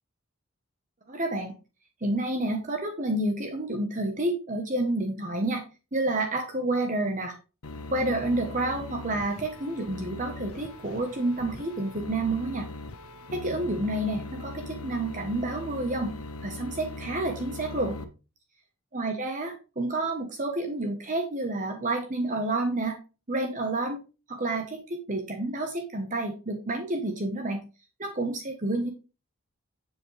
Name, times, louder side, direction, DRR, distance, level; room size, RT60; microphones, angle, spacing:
voice 1, 1.1-1.5 2.0-5.6 5.9-7.3 7.9-12.7 13.3-16.1 16.4-17.9 18.9-22.9 23.3-24.0 24.3-27.6 28.0-28.9, right 2 dB, 35° right, 4 dB, 1.0 m, -29 dB
sound 1, 7.6-18.0, left 2 dB, 90° left, 1.0 m, -40 dB
7.4 x 7.1 x 3.3 m, 0.32 s
head